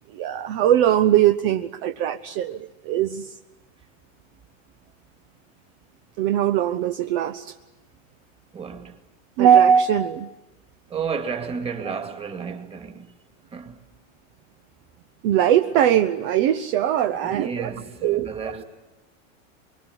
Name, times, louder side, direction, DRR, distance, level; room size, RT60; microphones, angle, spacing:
voice 1, 0.1-3.3 6.2-7.5 9.4-10.3 15.2-17.7 18.0-18.3, right 10 dB, 45° right, 1.0 m, -20 dB
voice 2, 8.5-9.0 10.9-13.1 13.5-13.8 17.2-18.6, right 6 dB, 15° right, 2.4 m, -32 dB
24.5 x 23.5 x 9.8 m
supercardioid pair, 145°, 39 cm